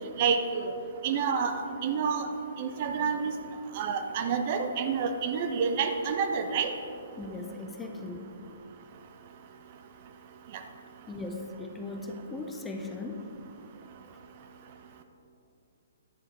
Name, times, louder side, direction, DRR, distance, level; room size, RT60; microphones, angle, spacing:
voice 1, 0.2-0.7 1.0-2.3 2.6-3.3 3.7-6.7, right 6 dB, 40° right, 6 dB, 0.6 m, -28 dB
voice 2, 7.2-8.3 11.1-13.3, left 2 dB, 10° left, 3 dB, 0.6 m, -38 dB
10.0 x 7.2 x 3.8 m, 2.7 s
figure-of-eight pair, 120°, 0 cm